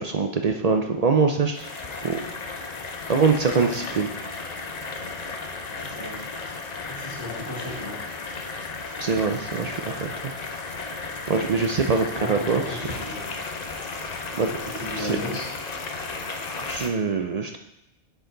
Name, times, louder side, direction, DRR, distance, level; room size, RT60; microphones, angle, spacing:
voice 1, 0.0-1.7 2.0-2.2 3.1-4.1 9.0-10.3 11.3-12.6 14.3-14.5 16.7-17.6, right 5 dB, 50° right, 4 dB, 0.4 m, -23 dB
sound 1, 1.5-16.9, left 3 dB, 45° left, 0.7 m, -34 dB
voice 2, 3.5-4.0 5.8-6.3 6.8-7.9 11.5-13.3 14.5-15.4, left 1 dB, 20° left, -13 dB, 3.2 m, -35 dB
9.7 x 4.8 x 3.8 m, 0.88 s
omnidirectional pair, 1.2 m